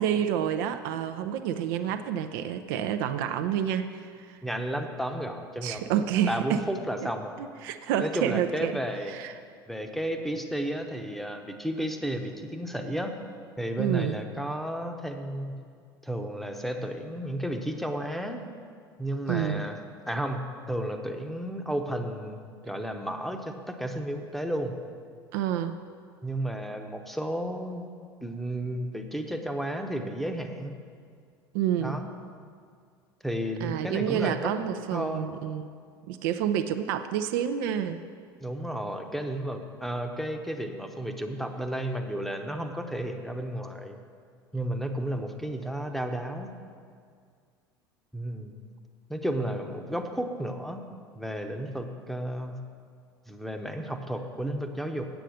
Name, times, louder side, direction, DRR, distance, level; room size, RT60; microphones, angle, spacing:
voice 1, 0.0-4.4 5.6-6.6 7.4-8.8 9.1-9.3 13.8-14.2 19.3-19.6 25.3-25.8 31.5-32.0 33.6-35.7 36.1-38.0, right 9 dB, 60° right, 8 dB, 0.5 m, -29 dB
voice 2, 4.4-5.9 6.3-7.4 8.0-9.1 9.7-13.1 13.6-15.6 16.0-18.4 19.0-19.8 20.1-22.4 22.7-24.8 26.2-27.9 28.2-30.7 31.8-32.1 33.2-34.5 34.9-35.3 38.4-44.0 44.5-46.5 48.1-48.5 49.1-50.8 51.1-52.6 53.3-55.1, right 1 dB, ahead, 5 dB, 0.9 m, -32 dB
8.3 x 7.9 x 6.5 m, 2.1 s
figure-of-eight pair, 70°, 13 cm